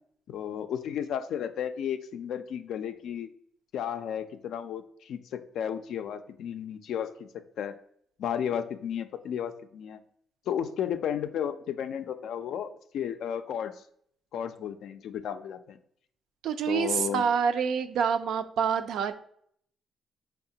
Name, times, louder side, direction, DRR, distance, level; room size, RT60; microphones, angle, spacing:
voice 1, 0.3-3.3 3.7-7.1 7.6-7.7 8.2-10.0 10.5-13.7 14.3-15.8 16.7-17.3, left 9 dB, 75° left, 9 dB, 0.3 m, -33 dB
voice 2, 16.4-19.1, right 7 dB, 75° right, 9 dB, 0.3 m, -27 dB
5.5 x 2.2 x 2.7 m, 0.66 s
cardioid pair, 90°, 0 cm